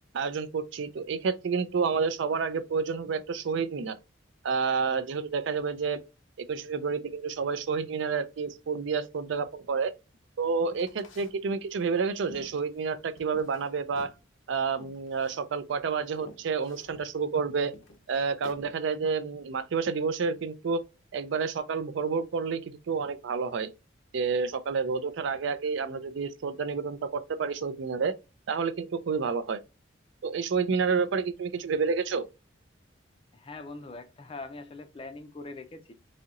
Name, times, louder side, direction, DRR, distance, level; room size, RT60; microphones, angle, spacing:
voice 1, 0.1-4.0 4.4-6.0 6.4-9.9 10.4-14.1 14.5-17.7 18.1-20.8 21.1-23.7 24.1-28.1 28.5-29.6 30.2-32.3, right 5 dB, 65° right, 0.4 m, -29 dB
sound 1, 10.6-11.3 11.8-13.7 13.9-14.2 14.8-15.4 15.8-15.9 16.1-17.1 17.7-18.6, left 2 dB, 75° left, 0.7 m, -50 dB
voice 2, 33.3-35.9, left 3 dB, 30° left, 0.4 m, -42 dB
4.1 x 2.8 x 2.4 m
head